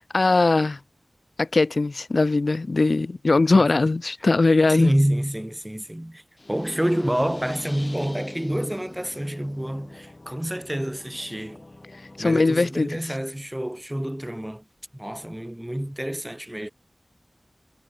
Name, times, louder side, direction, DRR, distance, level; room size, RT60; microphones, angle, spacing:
voice 1, 0.1-0.8 1.4-4.9 12.2-13.0, left 3 dB, 65° left, 0.5 m, -20 dB
voice 2, 4.7-6.2 6.5-11.6 12.2-14.6 14.9-16.7, right 1 dB, 10° right, 1.1 m, -28 dB
sound 1, 6.4-12.4, left 2 dB, 40° left, 3.7 m, -42 dB
wide cardioid pair, 70°, 0 cm